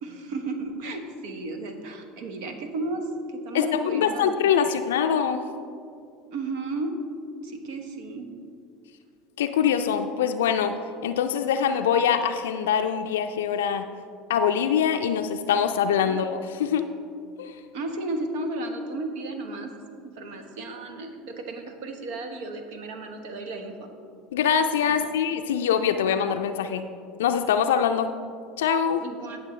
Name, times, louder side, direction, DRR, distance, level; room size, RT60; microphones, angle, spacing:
voice 1, 0.0-4.8 6.3-6.9 7.4-8.3 16.0-16.2 17.7-19.7 20.0-23.9 24.9-25.0 29.0-29.4, right 2 dB, 70° right, 6 dB, 1.1 m, -34 dB
voice 2, 3.5-5.4 9.4-13.9 14.3-16.9 17.4-17.6 24.3-26.9 27.2-28.1 28.6-29.0, left 8 dB, 80° left, 7 dB, 0.4 m, -24 dB
17.0 x 6.1 x 3.2 m, 2.4 s
hypercardioid pair, 80°, 0 cm